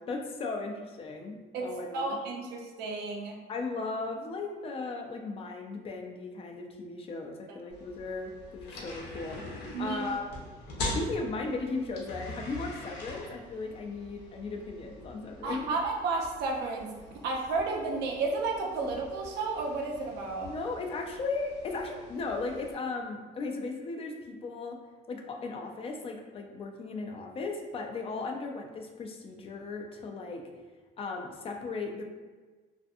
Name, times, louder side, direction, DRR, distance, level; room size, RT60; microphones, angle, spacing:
voice 1, 0.0-2.2 3.5-9.4 9.8-10.3 10.9-15.8 18.8-18.9 20.4-24.8 25.1-30.4 31.0-32.0, left 3 dB, 35° left, 2 dB, 0.3 m, -36 dB
voice 2, 1.5-3.4 9.7-10.1 15.4-16.9 17.2-20.5, right 3 dB, 80° right, 1 dB, 0.5 m, -32 dB
sound 1, 7.7-22.7, left 1 dB, 85° left, 0.7 m, -43 dB
2.5 x 2.5 x 2.4 m, 1.3 s
cardioid pair, 110°, 17 cm